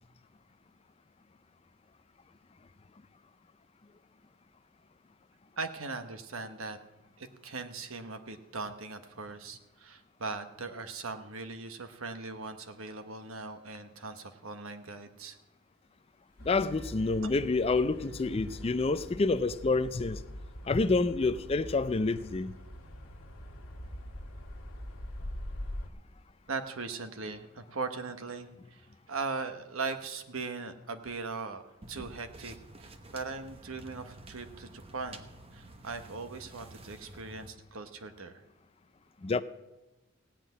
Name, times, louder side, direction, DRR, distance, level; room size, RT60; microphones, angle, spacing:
voice 1, 5.6-6.8 7.2-15.4 26.5-35.2 35.5-38.4, right 4 dB, 75° right, 1.1 m, -39 dB
Glass, 16.2-19.8 20.8-21.0, left 1 dB, 55° right, 4.1 m, -58 dB
sound 1, 16.4-25.9, equal, 75° left, 1.8 m, -43 dB
voice 2, 16.4-20.2 20.7-22.5 39.2-39.4, left 3 dB, 30° left, 0.4 m, -28 dB
sound 2, 31.8-37.5, right 2 dB, 25° right, 0.8 m, -50 dB
16.5 x 5.9 x 9.3 m
head